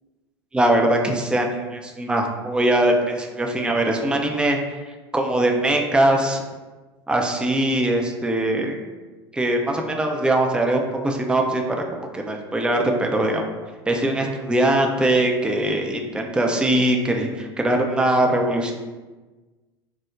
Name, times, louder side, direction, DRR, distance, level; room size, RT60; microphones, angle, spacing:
voice 1, 0.5-4.6 5.1-6.4 7.1-8.8 9.3-11.9 12.1-13.4 13.9-18.7, right 1 dB, 5° right, 2 dB, 0.4 m, -21 dB
4.4 x 2.0 x 2.3 m, 1.2 s
hypercardioid pair, 75°, 13 cm